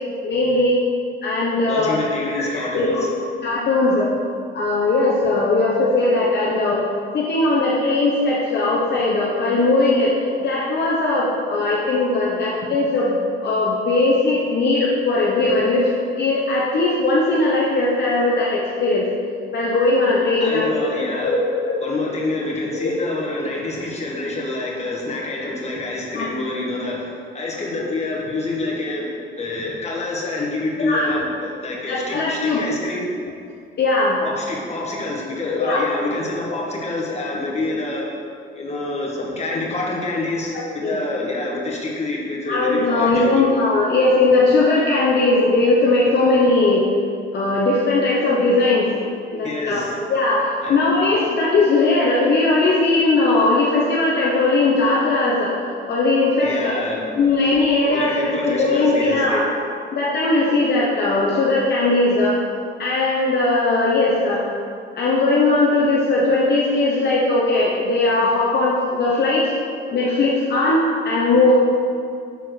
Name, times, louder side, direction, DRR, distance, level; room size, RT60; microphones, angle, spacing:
voice 1, 0.2-0.8 1.2-1.9 2.3-3.0 3.4-4.1 4.5-6.8 7.1-10.1 10.4-15.9 16.2-19.1 19.5-20.7 21.2-21.4 21.6-21.8 22.7-22.9 26.1-26.3 30.8-31.1 31.9-32.6 33.8-34.2 35.6-35.8 40.5-41.0 42.5-46.9 47.3-48.9 49.3-49.8 50.1-55.5 55.9-56.8 57.1-59.5 59.9-62.3 62.8-64.4 64.9-69.5 69.9-71.5, left 2 dB, 55° left, -5 dB, 1.0 m, -19 dB
voice 2, 1.6-3.1 20.4-21.3 21.8-29.1 29.4-33.1 34.2-38.0 38.5-43.4 49.4-50.0 50.6-50.8 56.4-57.0 57.9-59.5, left 2 dB, 35° left, -3 dB, 1.6 m, -27 dB
6.9 x 4.3 x 4.7 m, 2.3 s
cardioid pair, 90°, 20 cm